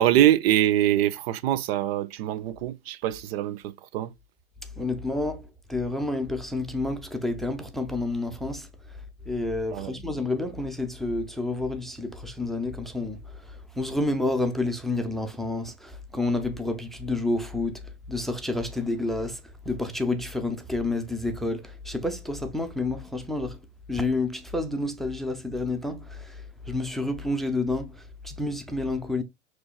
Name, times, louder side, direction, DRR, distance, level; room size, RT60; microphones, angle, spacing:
voice 1, 0.0-4.1 9.7-10.0, right 12 dB, 55° right, 0.5 m, -24 dB
voice 2, 4.8-5.4 5.7-8.7 9.3-13.2 13.5-17.7 18.1-19.4 19.7-23.6 23.9-26.4 26.7-29.2, left 2 dB, ahead, 0.6 m, -29 dB
6.2 x 3.0 x 2.3 m
hypercardioid pair, 110°, 36 cm